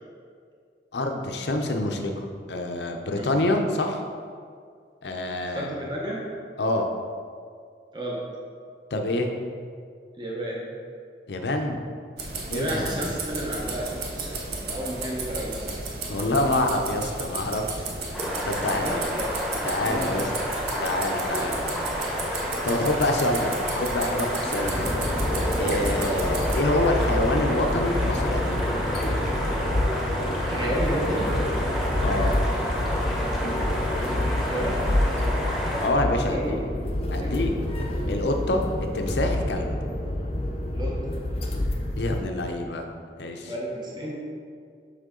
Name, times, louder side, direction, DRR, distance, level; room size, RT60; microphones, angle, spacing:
voice 1, 0.9-4.0 5.0-5.7 6.6-6.9 8.9-9.3 11.3-11.8 12.5-13.0 16.1-17.8 18.5-19.0 19.6-20.3 20.8-21.9 22.6-24.9 25.6-28.7 32.0-32.3 35.8-36.6 37.1-37.5 38.1-38.6 38.9-39.7 42.0-42.8 43.2-43.5, left 1 dB, 75° left, 4 dB, 0.7 m, -26 dB
voice 2, 5.5-6.2 7.9-8.2 10.2-10.7 12.5-15.8 17.5-17.6 18.6-19.3 19.9-20.3 25.8-25.9 30.4-31.3 34.5-34.8 36.3-36.6 37.1-37.5 40.7-41.1 43.5-44.1, equal, 25° right, -3 dB, 0.9 m, -32 dB
sound 1, 12.2-26.6, right 3 dB, 65° right, 0.9 m, -34 dB
sound 2, 18.1-35.9, equal, ahead, 1.1 m, -30 dB
sound 3, 24.5-42.2, left 1 dB, 35° left, 0.6 m, -27 dB
6.6 x 5.7 x 3.8 m, 2.2 s
head